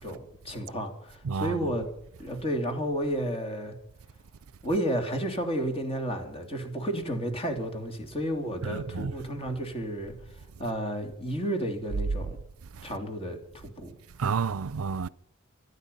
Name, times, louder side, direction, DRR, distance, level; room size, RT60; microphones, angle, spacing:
voice 1, 0.0-1.8 2.2-3.7 4.6-10.1 10.6-12.4 12.8-13.9, equal, 25° left, 3.0 m, -32 dB
voice 2, 1.3-1.7 8.7-9.1 14.2-15.1, right 5 dB, 80° right, 0.5 m, -30 dB
25.5 x 9.8 x 5.6 m
head